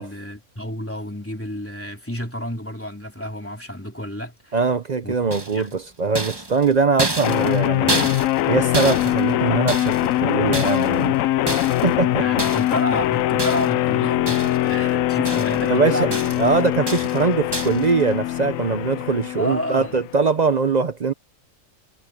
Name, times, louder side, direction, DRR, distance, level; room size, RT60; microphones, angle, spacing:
voice 1, 0.0-4.6 5.0-5.7 12.2-16.3 19.4-20.0, equal, 10° left, 3.4 m, -30 dB
voice 2, 4.5-8.1 8.5-11.2 11.5-12.2 14.9-15.1 15.6-16.1 16.4-21.1, right 4 dB, 40° right, 0.7 m, -22 dB
sound 1, 5.3-5.8 6.2-8.5 8.7-10.2 10.5-11.1 11.5-11.9 12.4-12.8 13.4-13.9 14.3-14.7 15.0-15.7 16.1-16.5 16.9-17.2 17.5-17.9, right 2 dB, 20° right, 1.7 m, -29 dB
sound 2, 7.2-20.2, left 14 dB, 90° left, 1.0 m, -22 dB
omnidirectional pair, 1.3 m